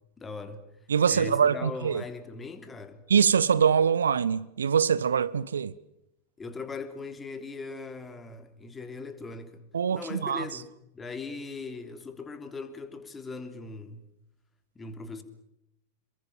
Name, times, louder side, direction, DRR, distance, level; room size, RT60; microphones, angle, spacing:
voice 1, 0.2-0.7 1.1-3.0 6.4-9.6 9.9-14.1 14.7-15.2, left 4 dB, 15° left, 3.3 m, -40 dB
voice 2, 0.9-2.0 3.1-5.7 9.7-10.4, right 7 dB, 70° right, 0.9 m, -23 dB
28.5 x 22.5 x 7.4 m
figure-of-eight pair, 90°, 0 cm